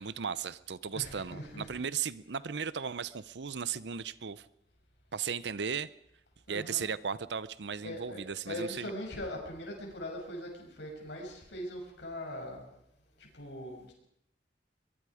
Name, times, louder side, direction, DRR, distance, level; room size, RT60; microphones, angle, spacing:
voice 1, 0.0-4.5 5.1-5.9 6.5-8.9, right 6 dB, 70° right, 17 dB, 0.7 m, -36 dB
voice 2, 0.9-1.7 6.5-6.9 7.8-12.6 13.2-13.9, left 1 dB, 70° left, 0 dB, 7.2 m, -41 dB
23.0 x 23.0 x 5.0 m, 0.78 s
head